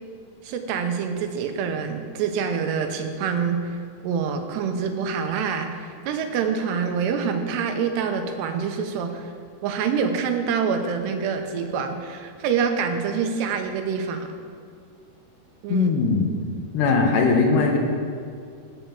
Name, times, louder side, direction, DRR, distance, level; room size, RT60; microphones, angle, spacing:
voice 1, 0.4-3.8 4.0-9.3 9.6-14.3 15.6-15.9, right 6 dB, 85° right, 6 dB, 3.0 m, -26 dB
voice 2, 15.7-16.3 16.7-17.8, left 4 dB, 85° left, 2 dB, 3.6 m, -20 dB
15.0 x 5.9 x 7.4 m, 2.3 s
omnidirectional pair, 4.8 m